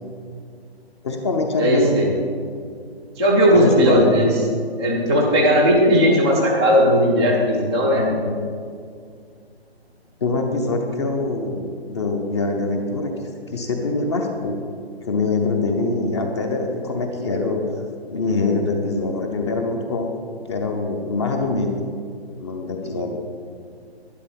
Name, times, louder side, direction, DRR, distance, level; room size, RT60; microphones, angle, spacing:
voice 1, 1.0-2.2 3.5-4.2 5.9-6.0 7.9-8.4 10.2-13.1 13.5-14.6 15.0-17.6 18.1-20.1 20.5-21.8 22.4-23.1, left 3 dB, 25° left, 3 dB, 0.8 m, -24 dB
voice 2, 1.6-2.1 3.2-4.3 4.8-8.0 22.8-23.0, equal, 10° left, -6 dB, 0.4 m, -17 dB
12.0 x 10.5 x 4.6 m, 2.2 s
figure-of-eight pair, 140°, 32 cm